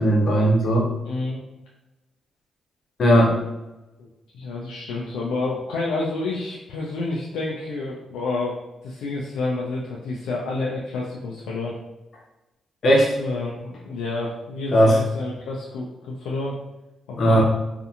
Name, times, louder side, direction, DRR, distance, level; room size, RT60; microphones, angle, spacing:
voice 1, 0.0-0.9 3.0-3.3 12.8-13.1 14.7-15.0 17.2-17.4, equal, 60° left, -2 dB, 0.8 m, -17 dB
voice 2, 1.0-1.4 4.3-11.7 13.2-16.5 17.1-17.4, left 3 dB, 80° left, -4 dB, 0.4 m, -29 dB
2.6 x 2.5 x 2.4 m, 0.98 s
supercardioid pair, 45°, 0 cm